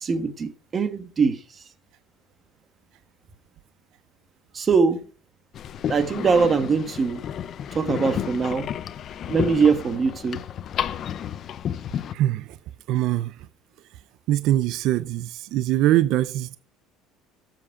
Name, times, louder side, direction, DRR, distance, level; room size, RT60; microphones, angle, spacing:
voice 1, 0.0-1.4 4.5-5.0 5.9-7.2 7.7-8.7 9.3-10.4, right 5 dB, 25° right, 1.4 m, -22 dB
sound 1, 5.5-12.1, left 9 dB, 40° left, 0.6 m, -31 dB
voice 2, 12.1-12.6 12.9-13.4 14.3-16.6, right 14 dB, 60° right, 0.5 m, -23 dB
13.0 x 7.9 x 4.8 m
cardioid pair, 140°, 0 cm